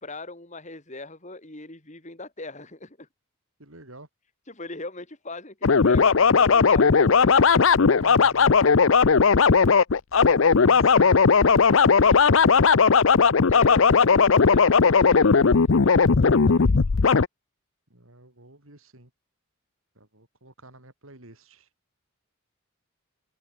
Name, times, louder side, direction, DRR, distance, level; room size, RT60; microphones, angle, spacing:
voice 1, 0.0-3.1 4.5-7.4 12.0-12.3 13.5-17.1, left 2 dB, 35° left, 3.1 m, -41 dB
voice 2, 3.6-4.1 7.9-8.5 10.4-11.3 17.9-19.1 20.0-21.7, right 2 dB, 70° right, 4.6 m, -48 dB
sound 1, 5.6-17.3, left 5 dB, 60° left, 0.6 m, -17 dB
head